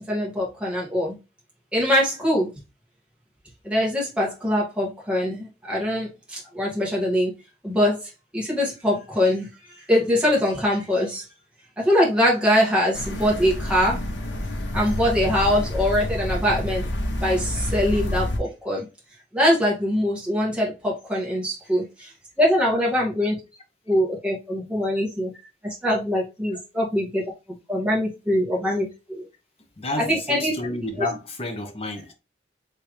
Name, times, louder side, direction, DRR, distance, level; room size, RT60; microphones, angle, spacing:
voice 1, 0.1-1.2 1.7-2.5 3.6-7.3 7.6-9.5 9.8-11.2 11.8-14.0 14.7-16.8 17.2-18.8 19.3-22.1 22.4-23.4 23.9-25.3 25.6-27.2 27.7-29.2 30.0-30.5, equal, 5° right, 2.1 m, -23 dB
sound 1, 12.9-18.4, left 1 dB, 85° left, 1.1 m, -28 dB
voice 2, 29.8-32.1, left 2 dB, 35° left, 1.0 m, -30 dB
4.4 x 3.5 x 3.3 m
head